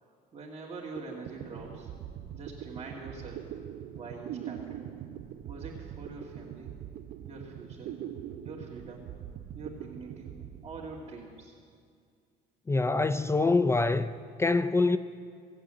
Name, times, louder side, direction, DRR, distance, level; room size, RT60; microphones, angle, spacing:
voice 1, 0.3-1.9 2.3-3.4 4.0-4.9 5.5-6.7 7.3-8.0 8.4-9.1 9.5-10.3 10.6-11.6, right 3 dB, 30° right, 2.2 m, -44 dB
sound 1, 0.7-0.8 1.0-11.4, right 10 dB, 70° right, 0.6 m, -42 dB
voice 2, 12.7-14.1 14.4-15.0, left 3 dB, 15° left, 0.4 m, -25 dB
16.5 x 8.2 x 8.8 m
cardioid pair, 110°, 17 cm